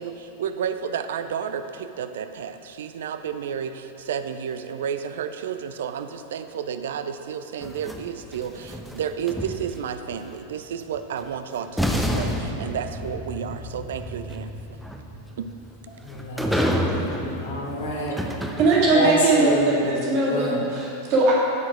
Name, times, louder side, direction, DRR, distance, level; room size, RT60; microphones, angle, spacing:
voice 1, 0.0-14.5 15.4-15.5 16.5-16.7, right 8 dB, 60° right, 10 dB, 0.4 m, -31 dB
sound 1, 7.6-10.0 11.2-11.3 11.8-19.2, equal, ahead, 0.7 m, -29 dB
voice 2, 16.0-16.7 17.4-18.3 18.9-20.0 20.3-20.7, left 1 dB, 65° left, -2 dB, 1.5 m, -27 dB
voice 3, 18.6-19.5 19.8-21.4, right 3 dB, 40° right, -5 dB, 2.1 m, -20 dB
12.0 x 4.5 x 4.9 m, 2.8 s
figure-of-eight pair, 90°, 0 cm